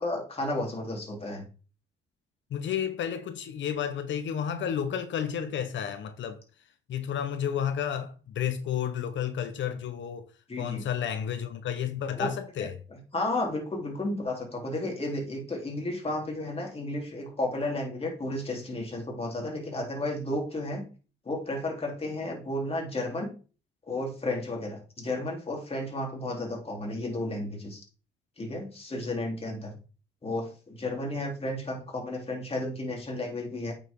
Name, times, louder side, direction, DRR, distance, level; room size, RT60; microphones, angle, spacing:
voice 1, 0.0-1.5 10.5-10.8 12.1-12.3 12.6-20.8 21.2-23.3 23.9-27.8 28.4-29.7 30.2-33.7, left 1 dB, 30° left, 3.4 m, -33 dB
voice 2, 2.5-6.4 6.9-10.3 10.6-12.7, left 8 dB, 70° left, 1.0 m, -31 dB
8.5 x 6.8 x 3.7 m
cardioid pair, 90°, 20 cm